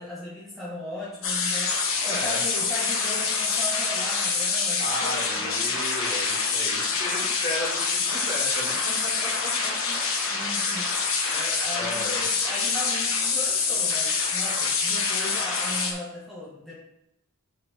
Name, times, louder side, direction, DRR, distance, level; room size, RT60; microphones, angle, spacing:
voice 1, 0.0-5.8 9.2-9.3 9.6-10.0 10.3-10.9 11.3-16.7, left 1 dB, ahead, -8 dB, 1.6 m, -37 dB
sound 1, 1.2-15.9, left 5 dB, 60° left, 1.5 m, -26 dB
voice 2, 2.0-2.4 4.8-8.7 9.0-9.5 11.3-12.2, left 1 dB, 35° left, -6 dB, 2.7 m, -34 dB
7.3 x 4.5 x 4.6 m, 0.83 s
head